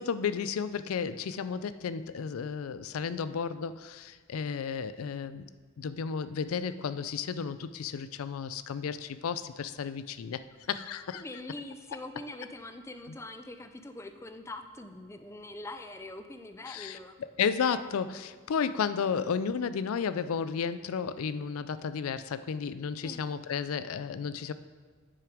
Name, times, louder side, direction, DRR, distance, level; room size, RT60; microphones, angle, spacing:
voice 1, 0.0-5.4 5.8-10.4 10.7-11.2 16.7-24.5, left 6 dB, 85° left, 13 dB, 0.4 m, -33 dB
voice 2, 11.1-17.1 23.0-23.2, left 2 dB, 15° left, 8 dB, 0.4 m, -43 dB
8.8 x 6.9 x 4.9 m, 1.4 s
head